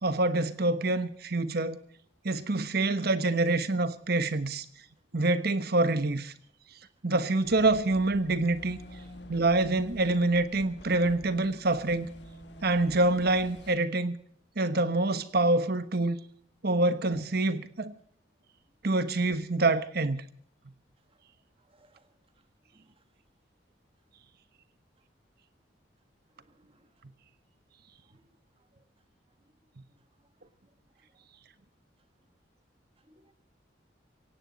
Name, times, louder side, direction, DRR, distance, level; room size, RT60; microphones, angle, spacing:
voice 1, 0.0-1.8 2.2-4.6 5.1-6.3 7.0-8.8 9.3-12.1 12.6-14.2 14.6-16.2 16.6-17.9 18.8-20.2, right 2 dB, 55° right, 1.2 m, -26 dB
sound 1, 7.4-13.8, left 1 dB, 70° left, 1.9 m, -47 dB
voice 2, 21.7-22.1 22.7-22.9 26.4-26.9 28.1-28.2 33.1-33.3, right 1 dB, 30° right, 1.7 m, -63 dB
17.0 x 17.0 x 4.1 m
head